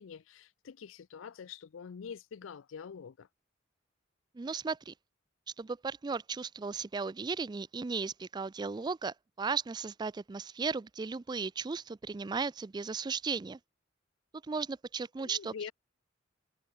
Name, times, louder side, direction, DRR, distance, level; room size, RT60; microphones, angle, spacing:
voice 1, 0.0-3.3 15.2-15.7, left 6 dB, 85° left, 0.4 m, -45 dB
voice 2, 4.3-4.9 5.6-13.6 14.4-15.7, right 4 dB, 20° right, 0.3 m, -36 dB
head